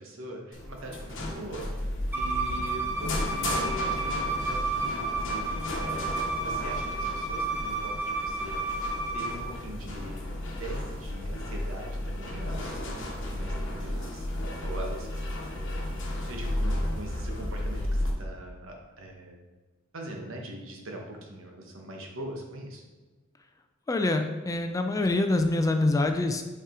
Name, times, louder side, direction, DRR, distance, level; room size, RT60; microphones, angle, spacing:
voice 1, 0.0-8.8 9.1-19.4 19.9-22.8, right 1 dB, 70° right, 1 dB, 1.1 m, -42 dB
sound 1, 0.5-18.1, left 1 dB, 65° left, 1.0 m, -33 dB
Bowed string instrument, 2.1-9.4, right 3 dB, 10° right, 0.7 m, -31 dB
voice 2, 23.9-26.4, left 2 dB, 15° left, 5 dB, 0.4 m, -25 dB
5.5 x 4.8 x 3.7 m, 1.3 s
head